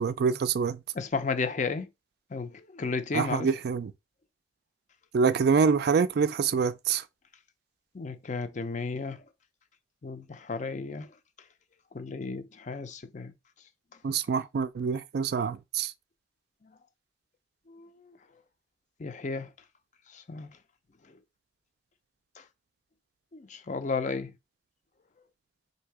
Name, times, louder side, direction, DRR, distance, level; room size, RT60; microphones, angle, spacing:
voice 1, 0.0-0.8 3.1-3.9 5.1-7.0 14.0-15.9, right 5 dB, 55° right, 0.3 m, -26 dB
voice 2, 0.9-1.9 2.3-3.5 7.9-9.2 10.0-11.1 11.9-13.3 17.7-17.9 19.0-19.5 20.1-20.5 23.3-24.3, left 4 dB, 40° left, 0.5 m, -33 dB
3.6 x 2.7 x 4.6 m
head